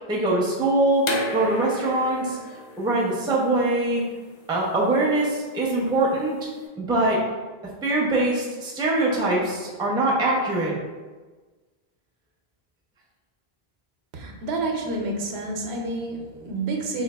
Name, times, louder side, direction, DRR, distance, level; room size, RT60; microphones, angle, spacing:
voice 1, 0.1-2.4 2.8-4.0 4.5-6.4 6.8-7.2 7.8-10.7, right 2 dB, 5° right, -4 dB, 0.3 m, -23 dB
sound 1, 1.0-6.6, left 3 dB, 55° left, 0.5 m, -35 dB
voice 2, 14.1-17.0, right 2 dB, 85° right, 1 dB, 0.8 m, -29 dB
3.8 x 2.3 x 2.2 m, 1.3 s
omnidirectional pair, 1.0 m